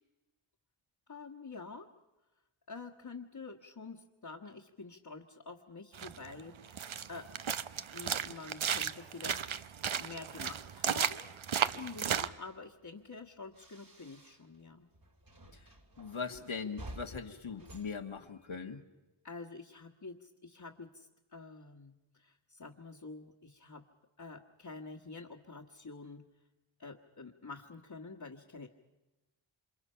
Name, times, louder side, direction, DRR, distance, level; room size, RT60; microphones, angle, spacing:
voice 1, 1.1-1.9 2.7-7.3 7.9-9.6 10.0-11.3 11.7-14.9 19.2-23.9 24.2-26.2 26.8-28.7, left 4 dB, 50° left, -3 dB, 1.6 m, -48 dB
sound 1, 5.9-12.3, right 8 dB, 75° right, 0.8 m, -35 dB
sound 2, 12.0-14.7 14.9-18.8, right 1 dB, 45° right, 2.3 m, -53 dB
voice 2, 16.0-18.8, left 5 dB, 75° left, 3 dB, 1.6 m, -40 dB
28.5 x 26.5 x 5.7 m, 1.1 s
wide cardioid pair, 60°, 49 cm